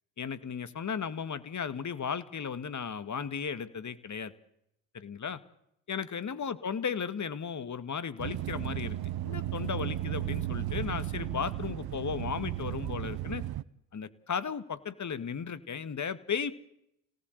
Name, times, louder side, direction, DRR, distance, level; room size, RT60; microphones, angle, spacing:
voice 1, 0.2-4.3 4.9-5.4 5.9-9.0 9.2-13.4 13.9-16.6, left 6 dB, 45° left, 13 dB, 2.1 m, -35 dB
sound 1, 8.2-13.6, right 13 dB, 65° right, 1.0 m, -34 dB
28.0 x 18.0 x 8.2 m, 0.79 s
hypercardioid pair, 50°, 40 cm